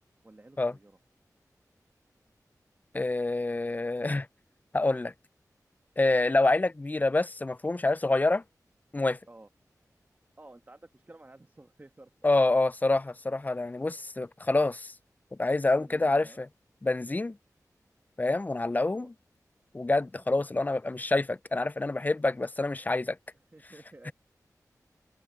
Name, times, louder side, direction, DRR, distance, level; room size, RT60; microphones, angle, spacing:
voice 1, 0.2-1.0 9.3-9.5 10.4-12.1 13.9-14.0 15.8-16.4 18.6-19.1 23.5-24.1, right 2 dB, 30° right, 1.3 m, -52 dB
voice 2, 2.9-4.3 4.7-5.1 6.0-8.4 8.9-9.2 12.2-14.9 15.4-16.5 16.8-17.4 18.2-19.1 19.7-23.2 24.1-24.2, left 2 dB, 25° left, 0.4 m, -27 dB
open air
wide cardioid pair, 65°, 7 cm